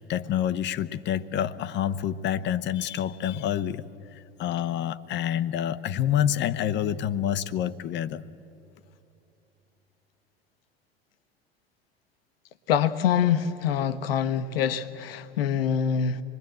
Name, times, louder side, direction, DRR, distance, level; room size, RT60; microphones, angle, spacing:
voice 1, 0.0-8.2, left 10 dB, 35° left, 0.8 m, -28 dB
voice 2, 12.7-16.2, left 8 dB, 65° left, 1.0 m, -25 dB
26.0 x 21.5 x 7.7 m
figure-of-eight pair, 75°, 32 cm